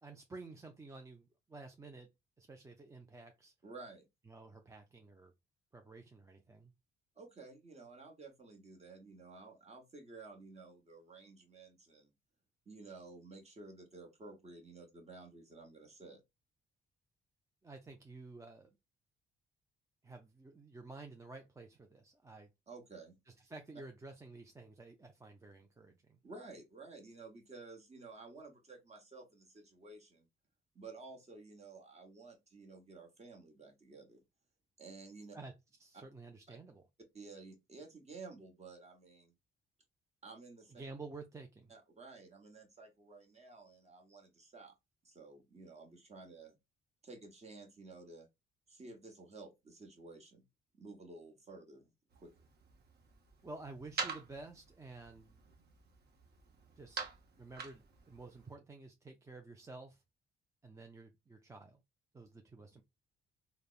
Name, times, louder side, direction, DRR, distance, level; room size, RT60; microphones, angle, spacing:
voice 1, 0.0-2.1 2.4-3.5 4.3-5.3 5.7-6.7 17.6-18.7 20.0-22.5 23.4-26.2 35.3-35.5 35.8-36.8 40.7-41.7 53.4-55.4 56.8-57.0 57.4-60.0 60.6-61.8 62.1-62.8, right 3 dB, 15° right, 0.4 m, -51 dB
voice 2, 3.6-4.1 7.2-12.1 12.7-16.2 22.7-23.2 26.2-30.3 30.7-34.2 34.8-35.4 35.9-36.0 36.5-36.6 37.1-39.3 40.2-40.8 41.7-44.7 45.0-46.6 47.0-48.3 48.7-50.4 50.7-52.3, right 3 dB, 35° right, 1.0 m, -53 dB
sound 1, 52.1-58.5, right 5 dB, 55° right, 0.8 m, -46 dB
3.3 x 2.0 x 2.4 m
cardioid pair, 90°, 20 cm